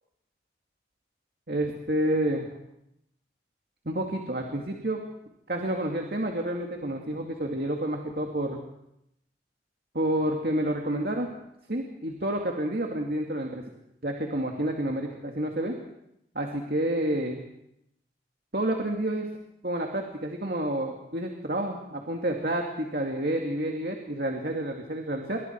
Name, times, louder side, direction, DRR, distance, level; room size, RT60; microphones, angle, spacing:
voice 1, 1.5-2.5 3.9-5.0 5.5-8.6 9.9-11.3 11.7-13.6 14.0-15.8 16.3-17.4 18.5-19.3 19.6-25.4, right 1 dB, 60° right, 1 dB, 2.4 m, -29 dB
27.5 x 24.5 x 4.7 m, 0.80 s
head